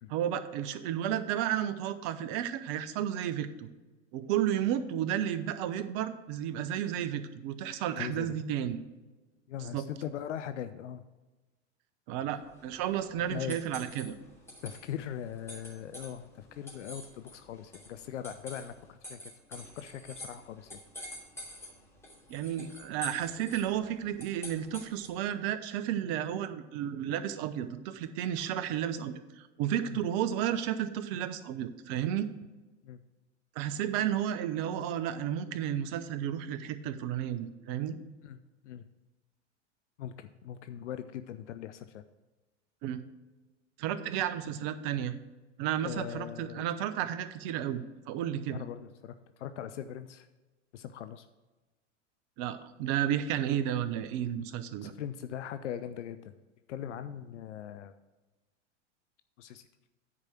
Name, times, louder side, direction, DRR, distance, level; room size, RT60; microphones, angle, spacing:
voice 1, 0.1-3.7 4.1-8.8 9.7-9.9 12.1-14.2 22.3-32.3 33.6-38.0 42.8-43.0 43.8-45.1 45.6-48.6 52.4-54.9, right 10 dB, 50° right, 12 dB, 0.9 m, -32 dB
voice 2, 8.0-8.3 9.5-11.0 12.3-12.4 13.3-13.5 14.6-19.2 19.5-20.8 29.9-30.0 32.8-33.0 38.2-38.4 38.6-38.8 40.0-42.0 45.8-46.6 48.5-50.3 50.7-51.3 54.8-56.3 56.7-57.9 59.4-59.6, left 10 dB, 70° left, 11 dB, 0.6 m, -40 dB
sound 1, 12.4-25.3, left 1 dB, 5° left, 2.8 m, -48 dB
9.7 x 4.8 x 5.8 m, 1.2 s
hypercardioid pair, 85°, 37 cm